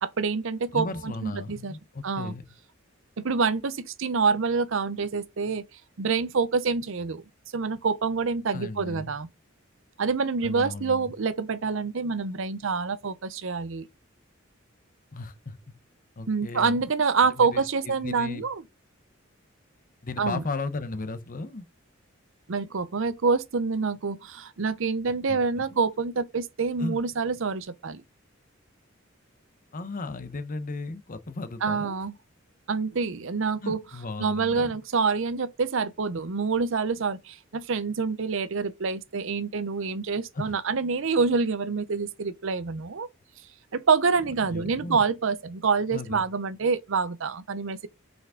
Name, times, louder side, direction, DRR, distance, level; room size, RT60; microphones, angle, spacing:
voice 1, 0.0-1.7 2.0-2.3 3.2-5.6 6.0-7.2 7.5-9.3 10.0-13.9 16.3-18.6 20.2-20.4 22.5-28.0 31.6-32.1 32.7-33.8 34.2-43.1 43.7-47.9, right 4 dB, 70° right, 0.7 m, -27 dB
voice 2, 0.7-2.4 8.5-9.1 10.4-11.1 15.1-15.6 16.2-16.8 17.4-18.4 20.0-21.7 25.3-25.6 26.8-27.0 29.7-31.9 33.6-34.8 40.3-40.6 44.4-45.0 45.9-46.2, left 3 dB, 40° left, 0.8 m, -35 dB
5.8 x 5.3 x 3.7 m
head